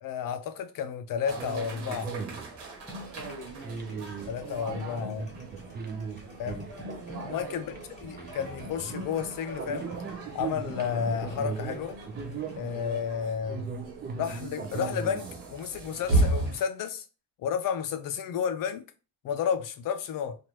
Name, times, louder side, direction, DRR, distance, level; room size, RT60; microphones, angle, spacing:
voice 1, 0.0-2.1 4.3-5.3 6.4-6.7 7.2-7.7 8.0-9.9 10.3-12.0 12.6-13.7 14.2-17.0 17.4-18.8 19.2-20.4, left 7 dB, 55° left, 0.5 m, -32 dB
sound 1, 1.2-16.5, right 2 dB, 85° right, 1.1 m, -36 dB
sound 2, 1.3-16.6, right 5 dB, 25° right, 0.4 m, -39 dB
sound 3, 2.9-12.6, left 3 dB, 20° left, 0.8 m, -47 dB
voice 2, 3.1-4.1 4.4-5.0 7.1-7.7, right 4 dB, 55° right, 0.8 m, -43 dB
3.0 x 2.5 x 3.0 m
cardioid pair, 165°, 40 cm